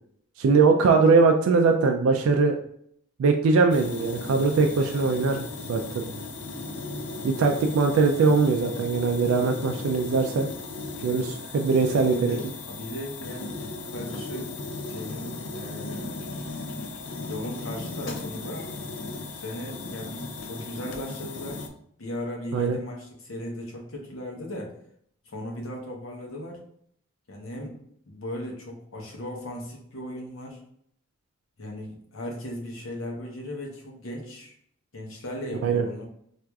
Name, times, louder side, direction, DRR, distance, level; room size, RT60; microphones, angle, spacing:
voice 1, 0.4-2.5 3.2-5.8 6.1-6.2 7.2-10.5 11.0-12.4 22.5-22.8 35.6-35.8, right 4 dB, 80° right, 3 dB, 0.3 m, -21 dB
sound 1, 3.7-21.7, left 3 dB, 55° left, 0.4 m, -36 dB
voice 2, 11.7-13.6 13.9-14.5 14.9-16.4 17.3-18.7 19.2-21.7 22.0-24.7 25.3-26.6 27.3-27.8 28.1-30.6 31.6-34.5 34.9-36.0, left 1 dB, 80° left, 0 dB, 0.8 m, -37 dB
4.5 x 2.4 x 2.3 m, 0.68 s
head